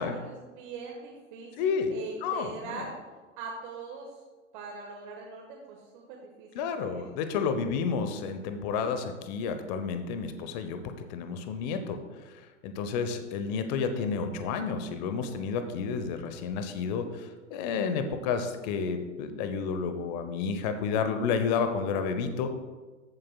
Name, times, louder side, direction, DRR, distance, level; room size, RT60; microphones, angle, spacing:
voice 1, 0.0-2.9 3.4-4.2 4.5-7.1, right 4 dB, 40° right, -1 dB, 1.4 m, -42 dB
voice 2, 1.6-1.9 2.2-2.8 6.5-12.0 12.2-22.5, left 5 dB, 35° left, 8 dB, 0.8 m, -31 dB
14.0 x 7.4 x 2.2 m, 1.3 s
figure-of-eight pair, 105°, 38 cm